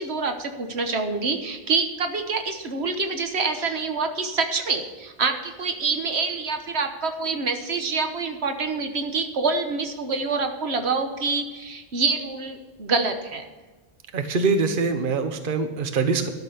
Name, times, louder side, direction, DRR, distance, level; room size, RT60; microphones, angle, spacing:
voice 1, 0.0-13.4, right 4 dB, 85° right, 6 dB, 1.4 m, -26 dB
voice 2, 14.1-16.3, right 4 dB, 55° right, 7 dB, 1.1 m, -23 dB
12.5 x 6.2 x 8.4 m, 1.3 s
omnidirectional pair, 1.1 m